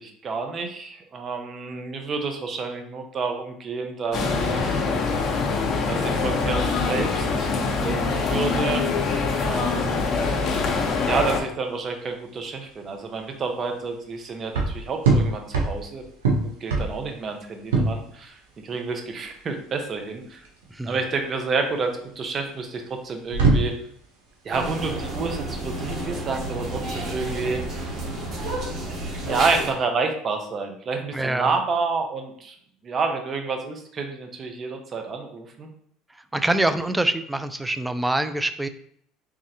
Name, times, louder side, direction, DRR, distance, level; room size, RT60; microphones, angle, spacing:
voice 1, 0.0-4.8 5.9-7.5 7.8-8.9 9.4-10.0 11.1-16.0 16.4-20.4 20.8-23.7 24.4-27.9 28.9-29.0 29.2-32.6 32.8-35.7, right 4 dB, 40° right, 4 dB, 0.8 m, -29 dB
sound 1, 4.1-11.4, left 4 dB, 45° left, 0.9 m, -24 dB
sound 2, 11.7-29.8, right 3 dB, 90° right, 0.8 m, -27 dB
sound 3, 24.5-29.7, right 1 dB, 55° right, 1.2 m, -31 dB
voice 2, 31.1-31.6 36.3-38.7, right 1 dB, 10° right, 11 dB, 0.4 m, -25 dB
3.6 x 3.2 x 2.8 m, 0.67 s
supercardioid pair, 85°, 0 cm